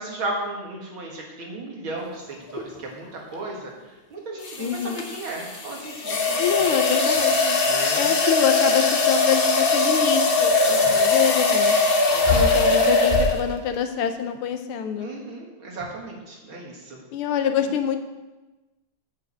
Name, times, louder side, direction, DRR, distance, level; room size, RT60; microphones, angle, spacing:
voice 1, 0.0-3.7 4.1-6.4 7.6-8.1 10.7-11.2 12.1-12.8 15.0-17.0, right 2 dB, 70° right, -1 dB, 2.7 m, -35 dB
sound 1, 2.5-2.8 4.4-13.6, left 3 dB, 45° left, 0.8 m, -21 dB
voice 2, 4.6-5.0 6.4-7.6 7.9-10.5 11.0-11.8 12.3-15.1 17.1-18.0, left 8 dB, 85° left, 7 dB, 1.7 m, -25 dB
sound 2, 10.7-10.8 12.0-12.8 13.1-13.3, left 2 dB, 25° left, 1.8 m, -25 dB
8.3 x 6.4 x 7.3 m, 1.1 s
omnidirectional pair, 2.3 m